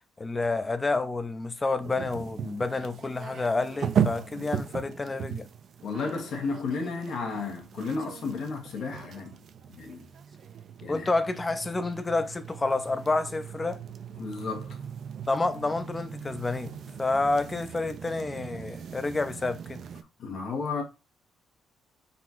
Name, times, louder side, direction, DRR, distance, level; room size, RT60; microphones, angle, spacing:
voice 1, 0.2-5.5 10.9-13.8 15.3-16.7 17.0-19.8, left 3 dB, 25° left, 0.6 m, -29 dB
sound 1, 1.8-20.0, right 8 dB, 60° right, 0.5 m, -37 dB
voice 2, 5.8-9.4 9.7-10.1 10.8-11.1 14.2-14.8 20.2-20.8, left 4 dB, 70° left, 1.2 m, -33 dB
4.0 x 2.4 x 4.2 m
cardioid pair, 90°, 0 cm